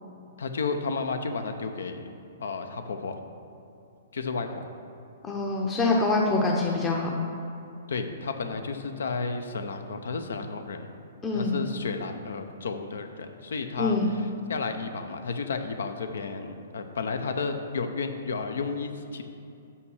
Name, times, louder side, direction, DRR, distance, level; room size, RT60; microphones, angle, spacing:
voice 1, 0.4-2.0 2.4-3.2 4.1-4.6 7.9-10.9 11.3-19.2, left 4 dB, 75° left, 7 dB, 0.7 m, -32 dB
voice 2, 5.2-7.1 11.2-11.6 13.8-14.1, left 3 dB, 20° left, -1 dB, 0.7 m, -25 dB
5.6 x 5.6 x 6.4 m, 2.6 s
hypercardioid pair, 125°, 0 cm